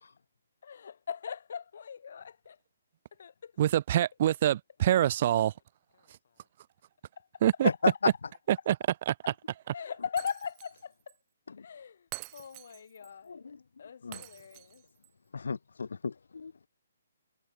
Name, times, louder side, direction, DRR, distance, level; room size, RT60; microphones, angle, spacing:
voice 1, 0.6-2.6 3.1-3.5 5.9-6.1 7.5-8.2 8.6-8.9 9.2-11.1 11.6-13.5 13.8-14.8, left 7 dB, 60° left, 4.1 m, -41 dB
voice 2, 3.6-5.5 7.4-7.7 8.5-8.8 9.1-9.2, right 11 dB, 40° right, 0.3 m, -25 dB
voice 3, 7.6-8.1 13.3-13.6 14.0-14.2 15.3-16.7, left 5 dB, 75° left, 0.4 m, -32 dB
Shatter, 10.2-10.8 11.1-11.2 12.1-13.1 14.1-15.1, right 38 dB, 25° right, 1.6 m, -46 dB
hypercardioid pair, 150°, 0 cm